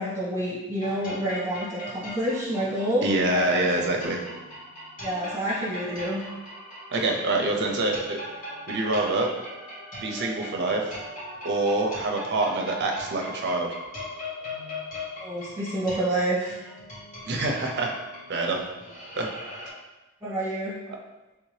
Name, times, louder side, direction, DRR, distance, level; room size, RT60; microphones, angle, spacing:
voice 1, 0.0-3.8 5.0-6.2 15.2-16.6 20.2-20.8, right 1 dB, 10° right, -7 dB, 1.0 m, -28 dB
sound 1, 0.8-19.7, left 1 dB, 35° left, 1.0 m, -39 dB
voice 2, 3.0-4.2 6.9-8.2 8.7-9.3 10.0-10.9 11.4-13.7 17.3-17.9 18.3-18.6 19.2-19.3, right 2 dB, 50° right, 1 dB, 0.5 m, -25 dB
3.4 x 2.8 x 3.1 m, 1.1 s
head